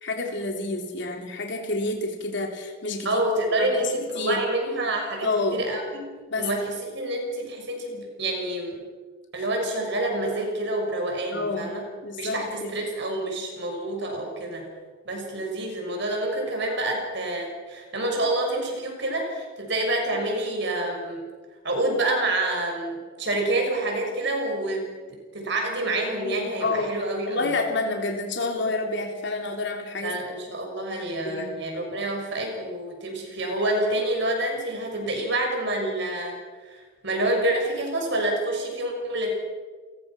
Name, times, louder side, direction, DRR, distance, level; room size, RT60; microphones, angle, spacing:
voice 1, 0.0-3.2 3.6-3.7 4.1-4.4 5.2-5.6 6.3-6.5 11.3-11.7 12.0-12.7 26.2-27.0 27.3-30.2 30.5-30.6 30.9-31.6, left 2 dB, 65° left, 2 dB, 3.5 m, -29 dB
voice 2, 3.0-8.7 9.3-11.8 12.2-14.7 15.0-21.2 21.6-27.5 30.0-36.4 36.7-39.3, right 1 dB, 65° right, 1 dB, 6.3 m, -28 dB
30.0 x 16.0 x 6.2 m, 1.5 s
head